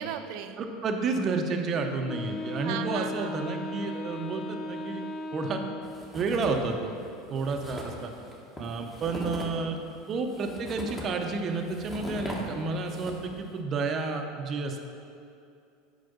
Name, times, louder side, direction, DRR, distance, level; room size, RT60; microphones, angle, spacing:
voice 1, 0.0-0.6 2.6-3.4, right 9 dB, 65° right, 9 dB, 0.5 m, -36 dB
voice 2, 0.6-5.0 5.3-5.6 6.1-6.9 7.3-8.1 8.6-9.8 10.1-14.8, right 4 dB, 40° right, 5 dB, 0.8 m, -30 dB
Wind instrument woodwind instrument, 2.1-6.2, left 2 dB, 35° left, 0.5 m, -37 dB
sound 1, 5.8-6.7 7.0-7.1 7.4-13.4, equal, 10° left, 1.7 m, -40 dB
7.7 x 5.1 x 5.3 m, 2.5 s
hypercardioid pair, 95°, 0 cm